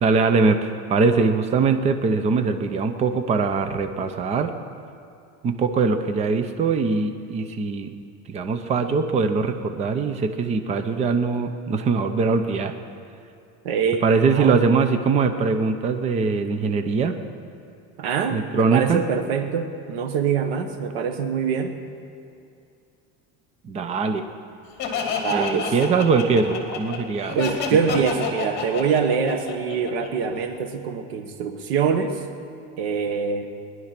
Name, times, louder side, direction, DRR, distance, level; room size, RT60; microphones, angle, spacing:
voice 1, 0.0-4.5 5.4-7.9 8.3-12.7 14.0-17.2 18.3-19.0 23.6-24.3 25.3-27.4 27.9-28.0, right 4 dB, 20° right, 8 dB, 0.6 m, -22 dB
voice 2, 13.6-14.0 14.3-14.6 18.0-21.7 25.2-25.7 27.3-32.2 32.8-33.5, right 6 dB, 90° right, 7 dB, 1.5 m, -24 dB
Laughter, 24.8-30.5, left 6 dB, 35° left, 2.5 m, -29 dB
19.5 x 11.0 x 5.9 m, 2.5 s
cardioid pair, 160°, 31 cm